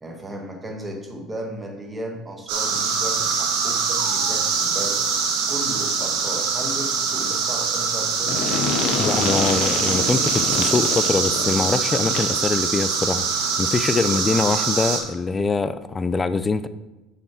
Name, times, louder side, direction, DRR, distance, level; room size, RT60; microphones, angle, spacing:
voice 1, 0.0-5.1 5.5-8.4, right 1 dB, 15° right, 1 dB, 1.5 m, -35 dB
sound 1, 2.5-15.0, right 5 dB, 75° right, 1.4 m, -23 dB
sound 2, 8.3-12.5, left 5 dB, 65° left, 0.9 m, -27 dB
voice 2, 9.0-16.7, left 4 dB, 20° left, 13 dB, 0.4 m, -23 dB
6.9 x 5.8 x 4.5 m, 1.1 s
cardioid pair, 125°, 0 cm